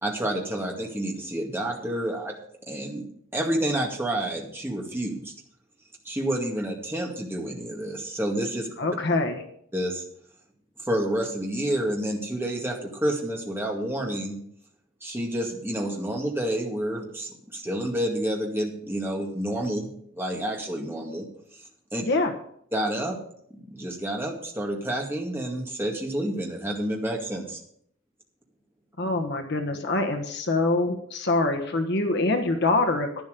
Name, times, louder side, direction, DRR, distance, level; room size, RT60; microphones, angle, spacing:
voice 1, 0.0-2.4 2.7-3.1 3.3-5.3 6.0-8.7 9.7-10.0 10.9-14.4 15.0-21.3 21.9-22.0 22.7-23.2 23.7-27.6, right 1 dB, 10° right, 0 dB, 2.2 m, -29 dB
voice 2, 8.8-9.4 22.0-22.3 29.0-33.2, left 2 dB, 55° left, 5 dB, 1.3 m, -25 dB
11.5 x 10.5 x 5.1 m, 0.67 s
head